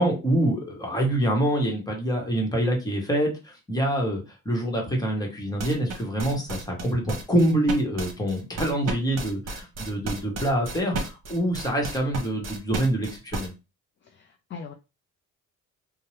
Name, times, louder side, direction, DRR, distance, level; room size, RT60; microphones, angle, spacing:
voice 1, 0.0-13.5, right 1 dB, 10° left, 1 dB, 1.2 m, -25 dB
sound 1, 5.6-13.5, right 2 dB, 60° right, 1.0 m, -33 dB
voice 2, 14.0-14.7, left 5 dB, 40° left, 4 dB, 0.4 m, -41 dB
2.7 x 2.2 x 3.2 m, 0.28 s
cardioid pair, 90°, 30 cm